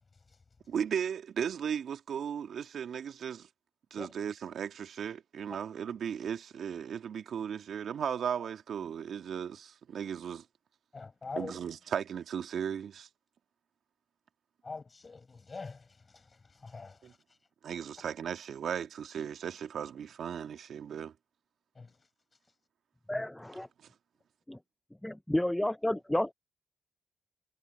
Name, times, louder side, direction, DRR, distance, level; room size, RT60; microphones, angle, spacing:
voice 1, 0.7-3.5 3.9-10.5 11.4-13.1 17.0-17.1 17.6-21.1 23.8-23.9, right 8 dB, 75° right, 1.8 m, -36 dB
voice 2, 10.9-11.6 14.6-17.2 21.7-22.0, left 4 dB, 40° left, 6.5 m, -44 dB
voice 3, 23.1-23.7 24.5-24.6 25.0-26.3, left 1 dB, 10° left, 0.7 m, -31 dB
supercardioid pair, 45°, 0 cm